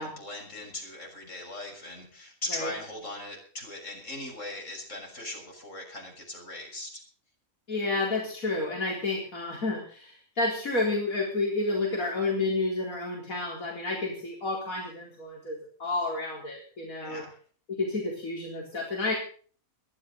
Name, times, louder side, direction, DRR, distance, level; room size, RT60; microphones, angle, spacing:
voice 1, 0.0-7.0 17.0-17.4, left 1 dB, 60° left, 1 dB, 6.7 m, -39 dB
voice 2, 7.7-17.2 17.7-19.1, left 2 dB, 85° left, -1 dB, 4.5 m, -30 dB
21.5 x 13.5 x 4.0 m, 0.42 s
omnidirectional pair, 1.4 m